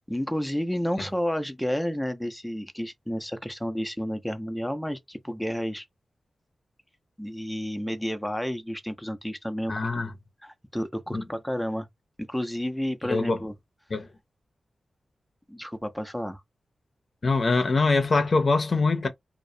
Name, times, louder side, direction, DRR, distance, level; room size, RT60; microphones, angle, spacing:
voice 1, 0.1-5.8 7.2-10.0 10.4-11.9 12.3-13.5 15.5-16.4, equal, 5° left, 0.5 m, -31 dB
voice 2, 9.7-10.1 11.1-11.2 13.1-13.4 13.9-14.1 17.2-19.1, left 3 dB, 60° left, 0.6 m, -23 dB
2.3 x 2.0 x 2.6 m
cardioid pair, 50°, 0 cm